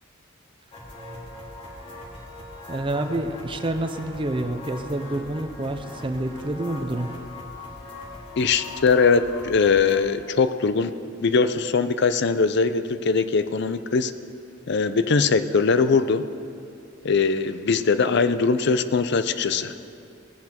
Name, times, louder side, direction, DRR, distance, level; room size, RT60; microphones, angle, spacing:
sound 1, 0.7-10.0, left 2 dB, 30° left, 2.8 m, -40 dB
voice 1, 2.7-7.1, right 1 dB, 25° right, 6 dB, 0.6 m, -28 dB
voice 2, 8.4-10.9 11.2-14.1 14.7-16.3 17.0-19.7, left 4 dB, 60° left, 12 dB, 0.5 m, -21 dB
18.5 x 10.0 x 4.4 m, 2.5 s
head